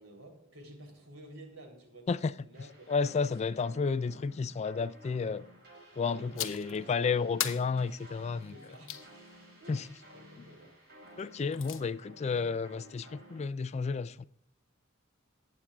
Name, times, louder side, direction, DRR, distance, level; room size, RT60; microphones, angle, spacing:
voice 1, 0.0-3.2 5.9-7.0 8.5-9.0 9.6-10.8, right 1 dB, 90° right, 3.5 m, -52 dB
sound 1, 2.5-13.4, equal, 55° right, 4.5 m, -54 dB
voice 2, 2.9-5.5 6.0-8.5 9.7-9.8 11.2-14.2, left 5 dB, 35° left, 0.3 m, -31 dB
sound 2, 6.4-6.8 7.4-9.1 11.2-11.8, left 11 dB, 75° left, 1.0 m, -38 dB
20.0 x 8.6 x 2.4 m
head